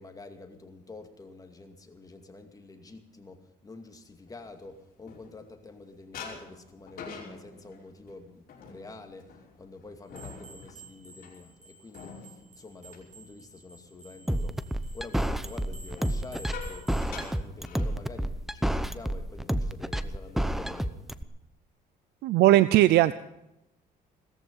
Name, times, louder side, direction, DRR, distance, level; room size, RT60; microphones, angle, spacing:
voice 1, 0.0-14.6 14.9-21.1, left 3 dB, 20° left, 5 dB, 2.3 m, -47 dB
sound 1, 4.3-5.7 6.1-14.0 14.3-14.6 15.8-18.4 18.7-18.9 19.2-19.5 20.0-20.7, left 5 dB, 60° left, 5.3 m, -47 dB
sound 2, 10.1-17.3, right 3 dB, 45° right, 5.1 m, -52 dB
sound 3, 14.3-21.2, right 1 dB, ahead, 0.8 m, -29 dB
voice 2, 22.2-23.1, right 15 dB, 75° right, 16 dB, 0.5 m, -19 dB
17.5 x 14.0 x 5.5 m, 0.87 s
cardioid pair, 110°, 17 cm